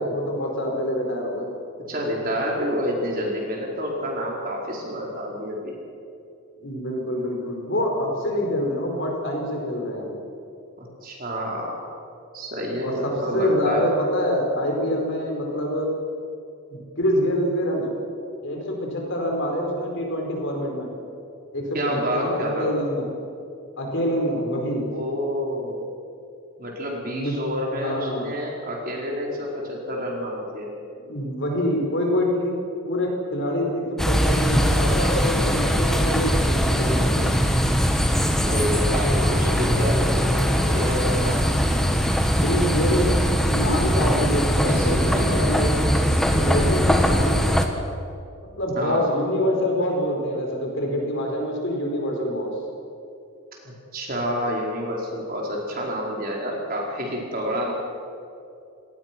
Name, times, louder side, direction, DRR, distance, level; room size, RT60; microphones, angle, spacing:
voice 1, 0.0-1.5 6.6-10.2 12.8-15.9 16.7-17.9 18.4-20.9 21.5-21.6 22.1-23.1 23.8-24.9 27.1-27.4 27.7-28.3 31.0-32.5 32.8-37.3 42.4-43.2 43.5-45.7 46.3-47.5 48.6-52.5, equal, 55° left, 1 dB, 5.0 m, -26 dB
voice 2, 1.9-5.7 10.8-11.8 12.3-13.8 21.7-22.7 24.9-25.9 26.6-30.7 38.4-41.5 44.6-45.4 48.7-49.1 53.6-57.7, equal, 40° right, -1 dB, 4.5 m, -28 dB
sound 1, 34.0-47.7, equal, ahead, 1.5 m, -21 dB
27.5 x 19.0 x 6.1 m, 2.6 s
head